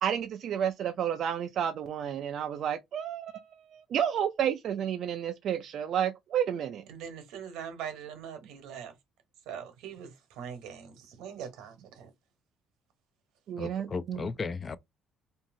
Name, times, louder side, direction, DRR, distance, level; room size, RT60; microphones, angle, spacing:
voice 1, 0.0-6.8 13.5-14.2, right 9 dB, 55° right, 0.3 m, -31 dB
voice 2, 6.9-8.9 9.5-12.1, right 8 dB, 90° right, 1.0 m, -42 dB
voice 3, 13.6-14.8, left 4 dB, 30° left, 0.3 m, -35 dB
2.8 x 2.7 x 2.6 m
cardioid pair, 130°, 0 cm